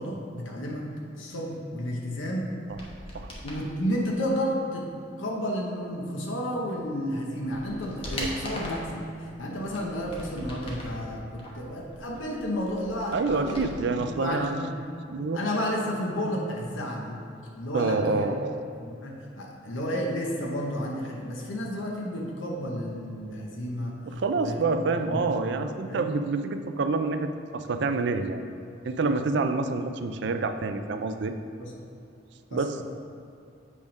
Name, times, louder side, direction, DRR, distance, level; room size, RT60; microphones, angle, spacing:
voice 1, 0.0-2.5 3.4-4.9 5.2-13.6 14.0-14.7 15.3-17.2 17.5-18.3 18.8-24.0 24.4-25.2 25.8-26.1 31.6-31.7 32.5-32.8, equal, 80° left, -1 dB, 0.9 m, -32 dB
sound 1, 2.6-3.6 6.7-6.8 7.3-8.9 9.5-11.0 11.4-14.1 14.3-14.4, left 1 dB, 30° left, 1.1 m, -40 dB
voice 2, 13.1-14.5 15.1-15.4 17.7-18.5 24.0-28.4 28.8-31.3 32.5-32.8, right 3 dB, 60° right, 8 dB, 0.4 m, -27 dB
8.4 x 3.6 x 5.2 m, 2.5 s
head